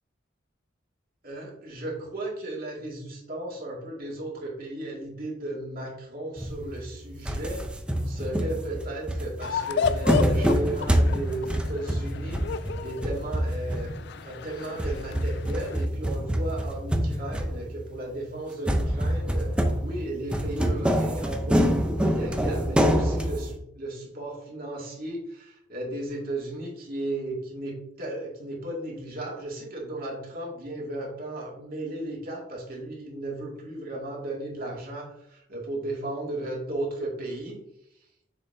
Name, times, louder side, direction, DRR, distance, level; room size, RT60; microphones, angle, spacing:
voice 1, 1.2-7.7 8.0-13.9 14.2-37.6, right 1 dB, 50° right, -3 dB, 2.2 m, -35 dB
sound 1, 6.4-7.0 7.3-14.2 14.6-17.9 18.7-23.6, equal, 5° right, 0.6 m, -26 dB
sound 2, 9.4-15.9, left 6 dB, 65° left, 0.4 m, -33 dB
6.8 x 5.5 x 2.7 m, 0.80 s
head